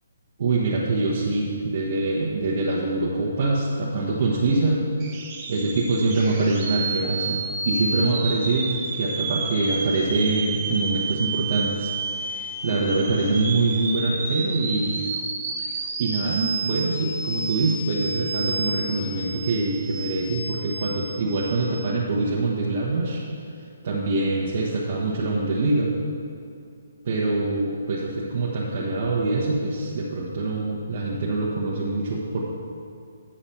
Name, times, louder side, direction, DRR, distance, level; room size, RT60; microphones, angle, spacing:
voice 1, 0.4-4.8 5.5-7.4 7.6-15.0 15.6-23.2 23.8-25.9 27.0-32.4, right 2 dB, 50° right, -5 dB, 1.1 m, -24 dB
sound 1, 5.0-21.7, right 3 dB, 25° right, 1.1 m, -31 dB
8.7 x 4.9 x 5.7 m, 2.4 s
hypercardioid pair, 155°, 0 cm